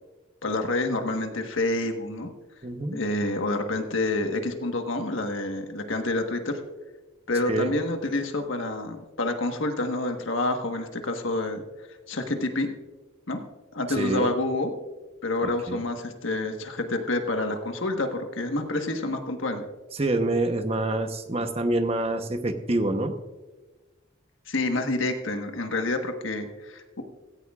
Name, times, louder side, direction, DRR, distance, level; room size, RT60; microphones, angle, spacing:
voice 1, 0.4-2.3 2.9-6.6 7.3-11.6 12.1-12.7 13.3-13.4 13.7-14.7 15.2-19.6 24.5-27.0, left 2 dB, 75° left, 5 dB, 1.4 m, -28 dB
voice 2, 2.6-3.0 7.5-7.7 13.9-14.3 15.4-15.8 19.9-23.2, right 1 dB, 30° right, 7 dB, 0.9 m, -27 dB
16.5 x 14.5 x 2.4 m, 1.2 s
head